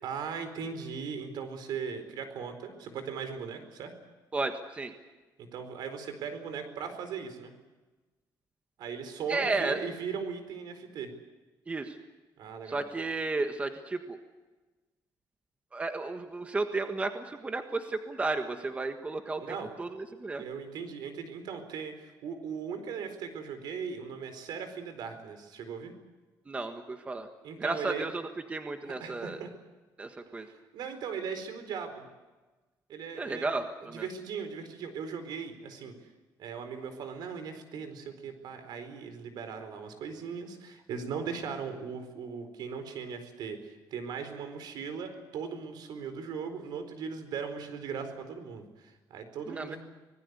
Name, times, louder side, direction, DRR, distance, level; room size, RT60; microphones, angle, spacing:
voice 1, 0.0-3.9 5.4-7.5 8.8-11.1 12.4-12.8 19.4-19.7 20.4-25.9 27.4-28.0 28.8-29.5 30.3-32.0 32.9-33.5 33.8-36.1 36.4-49.8, right 6 dB, 75° right, 9 dB, 4.4 m, -38 dB
voice 2, 4.3-4.9 9.3-9.8 11.7-12.0 12.6-14.2 15.7-20.4 26.5-27.3 27.6-29.4 30.0-30.5 33.1-34.1 49.5-49.8, right 3 dB, 20° right, 6 dB, 1.5 m, -33 dB
25.5 x 19.5 x 8.1 m, 1.2 s
cardioid pair, 160°, 7 cm